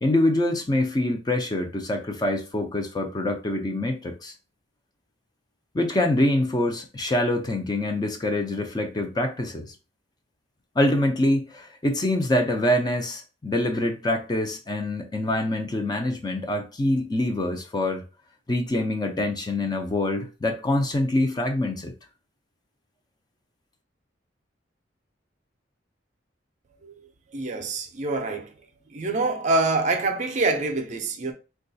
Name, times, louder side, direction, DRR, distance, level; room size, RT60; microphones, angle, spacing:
voice 1, 0.0-4.3 5.7-9.7 10.8-18.0 18.5-21.9, left 1 dB, 20° left, 0.4 m, -25 dB
voice 2, 27.3-28.5 28.9-31.3, right 2 dB, 40° right, 0.5 m, -25 dB
3.7 x 2.3 x 2.6 m
head